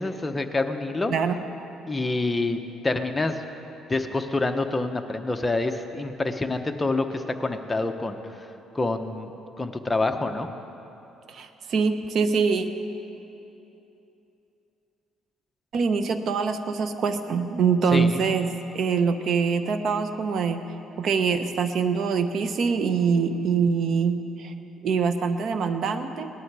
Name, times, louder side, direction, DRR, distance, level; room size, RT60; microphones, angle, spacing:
voice 1, 0.0-1.1 1.9-3.4 3.9-8.2 8.7-9.3 9.6-10.5 17.9-18.2, left 2 dB, 15° left, 6 dB, 0.8 m, -27 dB
voice 2, 11.3-12.7 15.7-18.5 18.7-20.6 21.0-24.5 24.8-26.3, right 5 dB, 60° right, 9 dB, 0.8 m, -24 dB
19.0 x 11.5 x 4.8 m, 2.9 s
cardioid pair, 105°, 0 cm